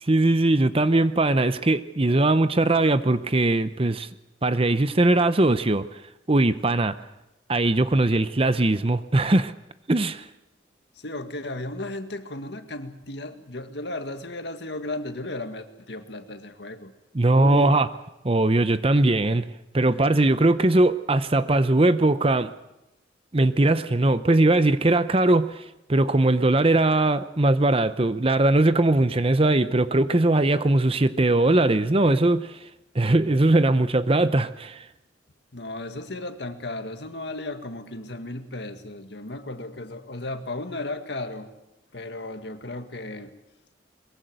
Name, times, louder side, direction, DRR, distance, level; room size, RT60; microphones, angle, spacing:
voice 1, 0.1-4.1 4.4-5.9 6.3-6.9 7.5-9.5 9.9-10.2 17.1-17.9 18.2-19.5 19.7-22.5 23.3-32.5 32.9-34.8, right 2 dB, 30° right, 0.8 m, -20 dB
voice 2, 11.0-16.9 17.3-17.8 35.5-41.5 41.9-43.4, left 2 dB, 65° left, 1.9 m, -35 dB
22.0 x 22.0 x 7.9 m
head